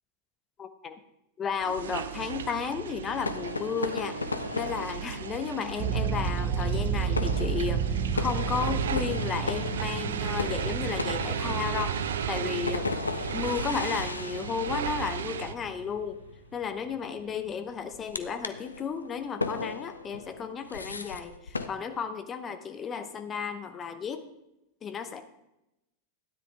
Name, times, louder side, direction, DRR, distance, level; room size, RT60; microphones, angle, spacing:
voice 1, 0.6-1.0 1.4-4.2 4.5-11.9 12.3-12.9 13.3-16.2 16.5-24.2 24.8-25.2, left 6 dB, 25° left, 8 dB, 1.0 m, -33 dB
sound 1, 1.6-15.5, right 8 dB, 65° right, 0.5 m, -35 dB
sound 2, 2.1-21.7, left 3 dB, 80° left, 0.6 m, -37 dB
sound 3, 5.8-16.8, right 6 dB, 45° right, 1.1 m, -32 dB
13.0 x 9.8 x 3.3 m, 0.88 s
figure-of-eight pair, 90°, 0 cm